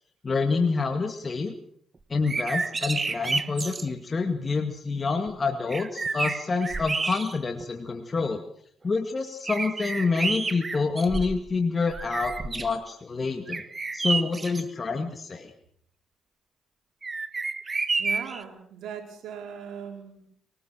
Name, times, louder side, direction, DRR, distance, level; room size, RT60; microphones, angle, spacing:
voice 1, 0.2-1.5 2.1-8.4 8.8-13.6 13.9-15.5, left 4 dB, 30° left, 5 dB, 2.1 m, -27 dB
sound 1, 2.1-3.9 5.3-5.4 5.7-7.6 8.2-8.3 9.5-11.5 11.9-12.8 13.5-14.6 17.0-18.4, right 4 dB, 30° right, 1.2 m, -30 dB
voice 2, 18.0-20.3, right 7 dB, 75° right, 3 dB, 4.3 m, -39 dB
23.0 x 19.0 x 6.2 m, 0.64 s
cardioid pair, 90°, 0 cm